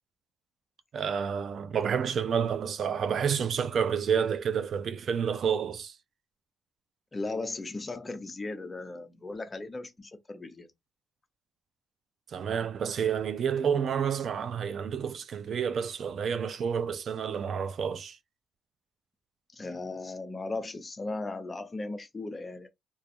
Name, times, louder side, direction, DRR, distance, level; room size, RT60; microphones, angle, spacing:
voice 1, 0.9-5.9 12.3-18.2, right 7 dB, 60° right, 0.3 m, -29 dB
voice 2, 7.1-10.7 19.5-22.7, left 2 dB, 25° left, 0.6 m, -37 dB
2.4 x 2.3 x 2.7 m
cardioid pair, 90°, 0 cm